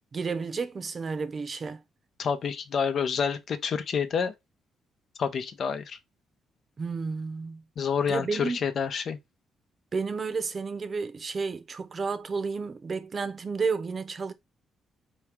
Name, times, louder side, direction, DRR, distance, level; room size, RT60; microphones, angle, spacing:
voice 1, 0.1-1.8 6.8-7.6 8.1-8.6 9.9-14.3, right 4 dB, 40° right, 0.8 m, -31 dB
voice 2, 2.2-4.3 5.2-6.0 7.8-9.2, left 6 dB, 55° left, 0.8 m, -28 dB
4.6 x 3.0 x 3.4 m
cardioid pair, 90°, 0 cm